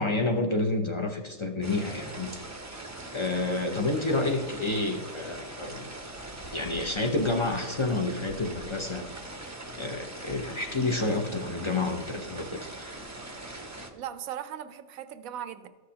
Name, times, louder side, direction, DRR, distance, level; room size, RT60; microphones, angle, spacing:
voice 1, 0.0-2.3 3.1-6.1 6.5-9.0 9.7-13.0, left 2 dB, 45° left, 3 dB, 0.4 m, -29 dB
sound 1, 1.6-13.9, right 2 dB, 20° right, 0.4 m, -41 dB
voice 2, 13.9-15.7, right 10 dB, 80° right, 11 dB, 1.0 m, -38 dB
14.0 x 6.3 x 2.8 m, 1.4 s
omnidirectional pair, 1.5 m